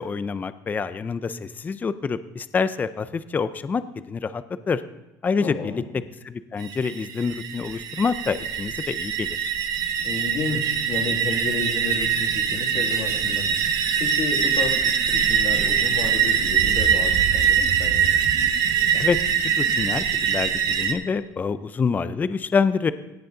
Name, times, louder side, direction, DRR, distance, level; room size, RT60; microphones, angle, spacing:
voice 1, 0.0-3.8 4.1-4.8 5.2-5.8 6.2-9.5 18.9-19.2 19.6-22.9, left 5 dB, 20° left, 14 dB, 0.4 m, -26 dB
voice 2, 5.4-5.9 10.0-18.1, left 4 dB, 55° left, 2 dB, 2.2 m, -32 dB
sound 1, 6.6-20.9, right 7 dB, 60° right, 1.1 m, -23 dB
17.0 x 6.8 x 3.9 m, 1.0 s
cardioid pair, 120°, 8 cm